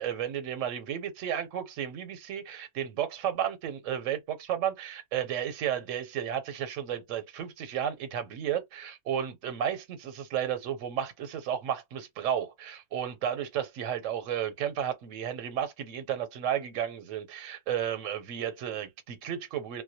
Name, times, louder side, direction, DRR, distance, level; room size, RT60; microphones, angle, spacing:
voice 1, 0.0-19.8, right 9 dB, 90° right, 1.0 m, -33 dB
2.2 x 2.1 x 2.7 m
omnidirectional pair, 1.3 m